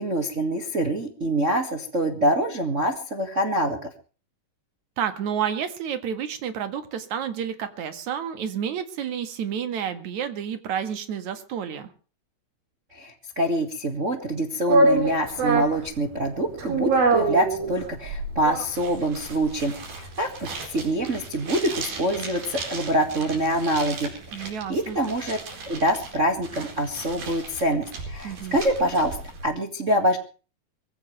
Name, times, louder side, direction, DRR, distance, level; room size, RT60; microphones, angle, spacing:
voice 1, 0.0-3.9 12.9-25.4 25.7-29.2 29.4-30.2, right 1 dB, 30° right, 5 dB, 1.5 m, -25 dB
voice 2, 5.0-11.9 24.3-25.0 28.2-28.6, right 8 dB, 60° right, 9 dB, 3.0 m, -30 dB
sound 1, 14.7-29.4, right 2 dB, 80° right, 6.2 m, -28 dB
23.5 x 16.0 x 3.3 m, 0.37 s
omnidirectional pair, 4.1 m